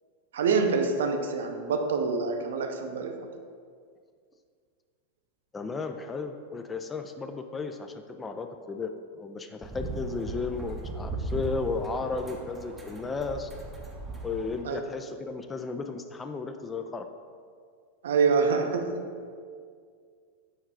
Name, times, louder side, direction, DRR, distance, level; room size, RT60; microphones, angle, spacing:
voice 1, 0.3-3.3 14.6-14.8 18.0-19.1, right 5 dB, 60° right, 5 dB, 0.5 m, -26 dB
voice 2, 5.5-8.9 9.2-13.5 14.2-17.1, left 4 dB, 15° left, 6 dB, 0.3 m, -34 dB
sound 1, 9.6-14.6, right 2 dB, 15° right, 0.7 m, -37 dB
4.8 x 4.4 x 4.7 m, 2.1 s
figure-of-eight pair, 90°, 0 cm